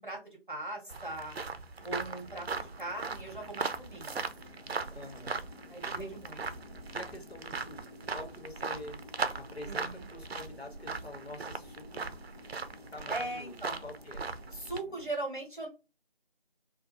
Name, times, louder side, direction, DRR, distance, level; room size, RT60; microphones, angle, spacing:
voice 1, 0.0-1.4 1.8-4.2 5.7-6.4 9.7-10.1 13.1-13.8 14.5-15.7, right 2 dB, 55° right, 0.9 m, -39 dB
sound 1, 0.9-14.8, right 4 dB, 90° right, 0.5 m, -39 dB
sound 2, 1.8-15.1, left 2 dB, 55° left, 0.9 m, -54 dB
voice 2, 4.9-5.4 5.9-6.2 6.9-7.8 8.1-9.0 9.3-12.1 12.9-14.3, left 1 dB, 85° left, 1.2 m, -46 dB
2.6 x 2.3 x 2.8 m
figure-of-eight pair, 180°, 31 cm